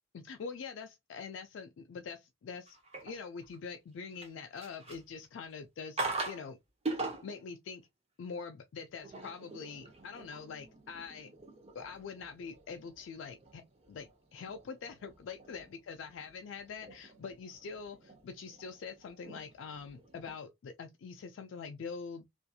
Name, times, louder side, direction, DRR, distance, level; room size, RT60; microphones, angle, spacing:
voice 1, 0.1-6.6 7.0-7.8 8.2-11.3 11.7-13.6 13.9-22.3, left 5 dB, 60° left, 0.3 m, -44 dB
Doing dishes, 2.7-3.7 4.1-5.2 6.0-6.4 6.8-7.4 8.8-20.4, right 3 dB, 30° right, 0.6 m, -44 dB
2.6 x 2.5 x 2.2 m
head